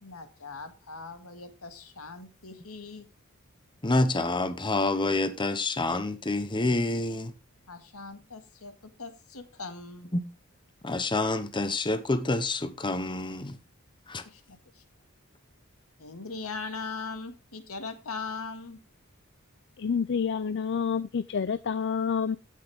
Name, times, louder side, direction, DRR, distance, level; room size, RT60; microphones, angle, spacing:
voice 1, 0.0-3.1 7.7-10.1 14.3-14.8 16.0-18.8, left 4 dB, 80° left, 1.9 m, -40 dB
voice 2, 3.8-7.3 10.1-10.2 10.8-13.6 14.1-14.2, left 2 dB, 20° left, 0.8 m, -27 dB
voice 3, 19.8-22.4, left 6 dB, 55° left, 0.4 m, -28 dB
16.0 x 6.5 x 3.5 m
head